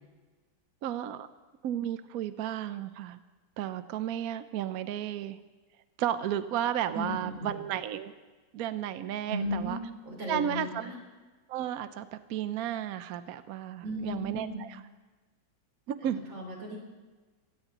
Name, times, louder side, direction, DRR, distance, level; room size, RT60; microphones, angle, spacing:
voice 1, 0.8-1.3 1.6-3.2 3.6-5.4 6.0-8.1 8.5-9.8 10.3-10.8 11.5-14.8 15.9-16.2, right 10 dB, 65° right, 11 dB, 1.0 m, -33 dB
voice 2, 6.9-7.6 9.3-9.8 10.0-10.9 13.8-14.6 16.3-16.8, equal, 80° right, -1 dB, 4.7 m, -35 dB
23.0 x 17.0 x 3.0 m, 1.3 s
omnidirectional pair, 2.1 m